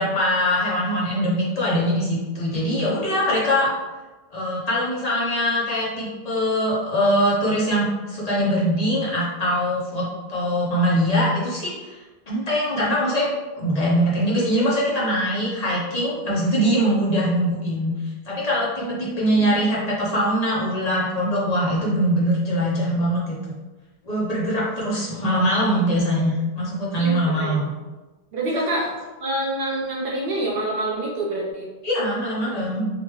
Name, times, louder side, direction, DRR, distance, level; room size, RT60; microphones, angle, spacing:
voice 1, 0.0-3.7 4.3-12.0 12.3-13.3 13.6-17.9 18.3-23.4 24.0-27.6 28.5-28.9 31.8-32.9, equal, 40° left, -7 dB, 1.0 m, -22 dB
voice 2, 18.8-19.5 27.0-27.6 28.3-28.9 29.2-31.7, right 1 dB, 70° right, -3 dB, 0.8 m, -27 dB
3.3 x 2.5 x 3.1 m, 1.2 s
omnidirectional pair, 1.0 m